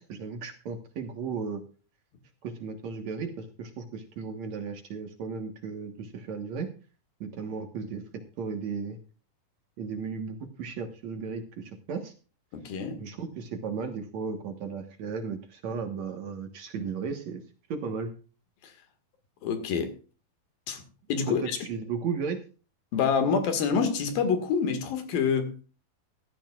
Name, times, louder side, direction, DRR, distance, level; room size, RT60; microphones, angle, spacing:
voice 1, 0.0-1.6 2.4-6.7 7.2-8.0 8.4-9.0 9.8-12.1 13.0-17.4 17.7-18.1 21.3-22.4, right 5 dB, 60° right, 2.3 m, -35 dB
voice 2, 12.5-13.0 18.6-18.7 19.4-19.9 20.7-20.8 21.1-21.6 22.9-25.5, left 6 dB, 75° left, 3.6 m, -27 dB
16.5 x 13.0 x 2.4 m
omnidirectional pair, 4.2 m